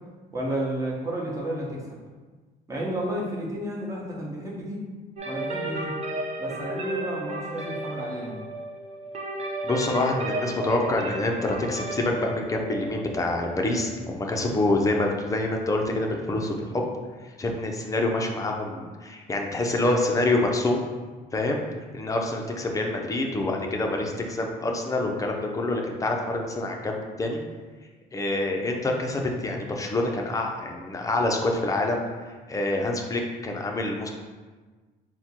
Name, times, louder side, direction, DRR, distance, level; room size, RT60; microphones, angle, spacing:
voice 1, 0.3-2.0 2.7-4.8 5.2-5.9 6.4-8.4, right 1 dB, 20° right, -4 dB, 1.1 m, -31 dB
sound 1, 5.2-14.8, right 1 dB, 40° right, 0.7 m, -34 dB
voice 2, 9.6-16.8 17.4-20.8 21.3-21.6 21.9-27.4 28.1-32.0 32.5-34.1, left 2 dB, 20° left, 1 dB, 0.5 m, -26 dB
4.3 x 2.2 x 4.2 m, 1.3 s
cardioid pair, 110°, 17 cm